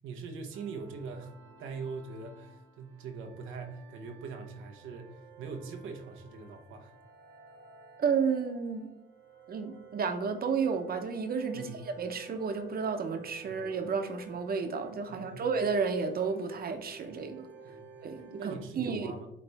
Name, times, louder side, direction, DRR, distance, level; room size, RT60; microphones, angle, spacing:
voice 1, 0.0-1.3 1.6-6.9 11.5-11.8 13.5-13.6 15.1-15.5 17.6-18.0 18.4-19.3, right 5 dB, 90° right, 5 dB, 1.1 m, -42 dB
sound 1, 0.5-18.6, right 4 dB, 70° right, 1.5 m, -53 dB
voice 2, 8.0-8.9 9.5-17.5 18.0-19.1, right 5 dB, 50° right, 7 dB, 1.0 m, -32 dB
8.4 x 3.2 x 3.5 m, 0.85 s
cardioid pair, 90°, 20 cm